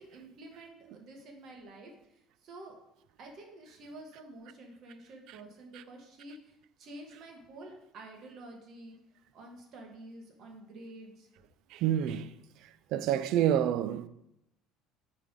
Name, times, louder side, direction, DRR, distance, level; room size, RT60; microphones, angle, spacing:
voice 1, 0.0-1.9 2.4-2.7 3.2-8.9 9.3-11.3, right 2 dB, 45° right, 1.3 m, -49 dB
voice 2, 11.7-12.3 12.9-14.1, right 10 dB, 60° right, 0.4 m, -28 dB
9.1 x 3.4 x 3.7 m
cardioid pair, 155°, 0 cm